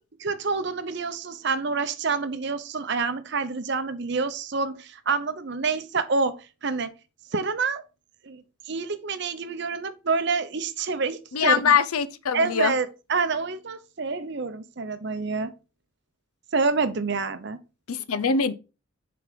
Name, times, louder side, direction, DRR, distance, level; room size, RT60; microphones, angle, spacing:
voice 1, 0.2-6.9 7.3-7.8 8.2-11.6 12.3-15.5 16.5-17.6, right 4 dB, 50° right, 0.7 m, -27 dB
voice 2, 11.3-12.7 17.9-18.5, left 6 dB, 90° left, 0.6 m, -23 dB
6.7 x 3.9 x 5.0 m
head